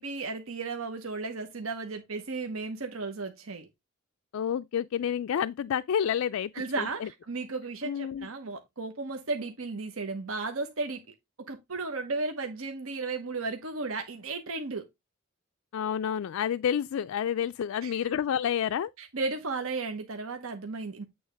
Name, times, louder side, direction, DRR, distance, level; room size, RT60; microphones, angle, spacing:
voice 1, 0.0-3.7 6.5-11.0 11.4-14.9 17.8-18.0 19.0-21.0, right 3 dB, 85° right, 1.0 m, -34 dB
voice 2, 4.3-6.5 6.8-7.1 7.8-8.3 15.7-18.9, left 8 dB, 80° left, 0.3 m, -29 dB
8.7 x 3.4 x 5.0 m
head